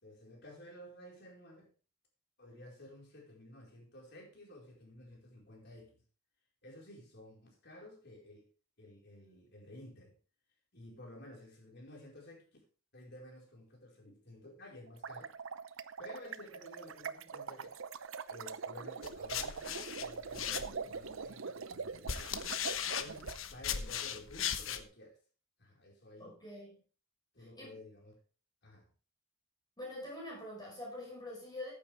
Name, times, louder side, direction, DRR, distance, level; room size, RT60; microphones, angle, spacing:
voice 1, 0.0-1.7 2.4-6.0 6.6-8.5 8.8-10.1 10.7-12.4 12.9-15.3 16.0-17.7 18.3-22.5 23.0-25.2 25.6-26.3 27.3-28.2 28.6-28.9, left 1 dB, 55° left, 4.7 m, -53 dB
sound 1, 14.9-23.4, right 5 dB, 85° right, 0.7 m, -43 dB
sound 2, 19.0-21.0 21.7-24.8, left 8 dB, 85° left, 1.0 m, -38 dB
voice 2, 26.2-26.8 27.4-27.8 29.8-31.7, left 1 dB, 20° left, 5.7 m, -45 dB
14.5 x 8.9 x 3.5 m
head